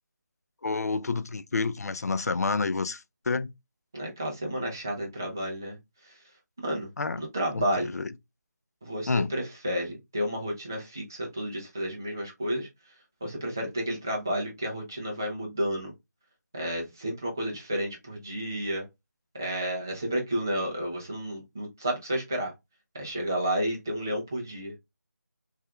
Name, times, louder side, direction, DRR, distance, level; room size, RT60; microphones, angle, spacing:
voice 1, 0.6-3.5 7.0-7.2 7.5-8.1 9.1-9.3, left 4 dB, 60° left, 0.4 m, -29 dB
voice 2, 3.9-5.8 6.0-6.1 6.6-6.9 7.2-7.9 8.8-12.7 13.2-15.9 16.5-18.8 19.3-22.5 22.9-24.7, equal, 10° right, 0.4 m, -31 dB
5.5 x 2.4 x 2.2 m
figure-of-eight pair, 175°, 10 cm